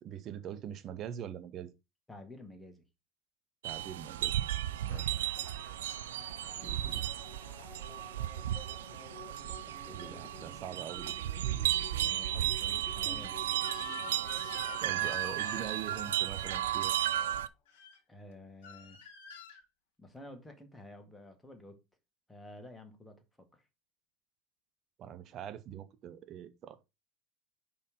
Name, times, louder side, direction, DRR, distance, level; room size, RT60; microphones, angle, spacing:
voice 1, 0.0-1.7 3.6-4.3 4.8-5.2 6.6-7.0 9.9-11.1 14.8-17.0 25.0-26.9, right 9 dB, 40° right, 0.9 m, -43 dB
voice 2, 2.1-2.8 11.9-13.6 18.1-19.0 20.0-21.8 22.3-23.6, left 1 dB, 10° left, 1.8 m, -51 dB
morning birds and windchimes, 3.6-17.5, right 12 dB, 70° right, 0.4 m, -34 dB
sound 1, 4.9-17.4, left 5 dB, 35° left, 1.1 m, -53 dB
Crying sobbing / Screech, 13.6-15.8 17.7-18.0 18.6-19.6, left 6 dB, 65° left, 1.6 m, -47 dB
5.3 x 4.4 x 5.0 m
figure-of-eight pair, 80°, 0 cm